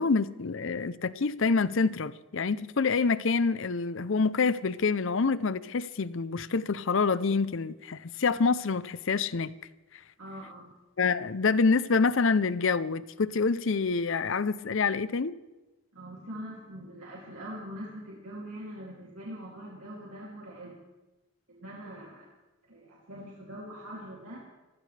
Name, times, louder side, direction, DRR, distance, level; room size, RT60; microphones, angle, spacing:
voice 1, 0.0-9.5 11.0-15.4, left 4 dB, 55° left, 0.6 m, -27 dB
voice 2, 10.2-10.7 15.9-20.8 21.5-22.3 22.6-24.4, equal, 80° right, 2.8 m, -43 dB
27.5 x 15.5 x 3.4 m
head